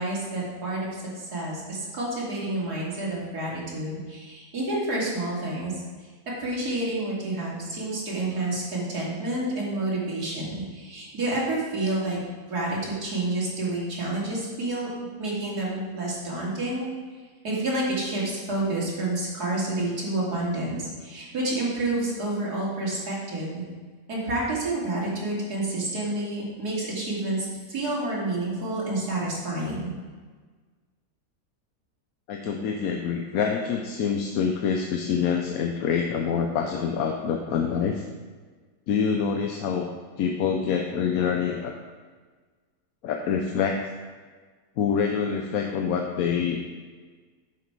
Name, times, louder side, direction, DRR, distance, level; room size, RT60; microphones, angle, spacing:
voice 1, 0.0-5.7 6.4-12.2 12.5-14.9 15.2-16.9 17.4-23.6 24.1-29.9, right 2 dB, 85° right, -5 dB, 2.9 m, -29 dB
voice 2, 32.3-38.0 38.9-39.9 40.2-41.7 43.0-43.8 44.8-46.6, left 6 dB, 70° left, 2 dB, 1.1 m, -26 dB
10.5 x 6.1 x 4.6 m, 1.5 s
omnidirectional pair, 1.6 m